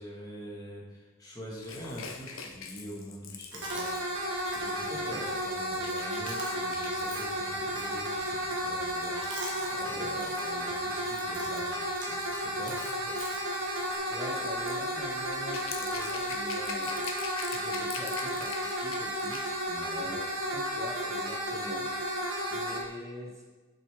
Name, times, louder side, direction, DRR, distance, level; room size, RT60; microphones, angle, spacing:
voice 1, 0.0-4.1 4.5-9.2 9.7-12.8 19.7-20.1, equal, 20° left, -4 dB, 1.6 m, -45 dB
Rattle / Rattle (instrument), 1.6-10.6 11.5-19.7 19.9-20.1, left 6 dB, 85° left, 0.8 m, -45 dB
Chewing mastication, 3.5-14.0, right 2 dB, 60° right, 1.6 m, -48 dB
sound 1, 3.6-22.8, equal, 85° right, 1.7 m, -33 dB
voice 2, 4.9-5.2 9.8-10.3 13.0-13.2 14.1-17.1 17.5-23.4, left 1 dB, 15° right, -1 dB, 1.2 m, -44 dB
8.0 x 6.7 x 3.5 m, 1.3 s
head